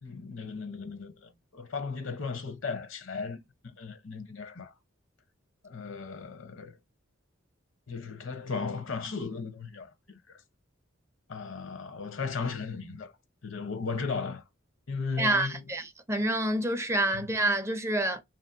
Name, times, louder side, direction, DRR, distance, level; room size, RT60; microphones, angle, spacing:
voice 1, 0.0-3.4 3.8-4.7 5.6-6.8 7.9-10.4 11.3-13.1 13.4-14.4 14.9-15.6 17.1-17.3, left 4 dB, 70° left, 0.7 m, -36 dB
voice 2, 15.2-18.2, right 1 dB, 15° right, 0.4 m, -28 dB
2.9 x 2.6 x 2.5 m
head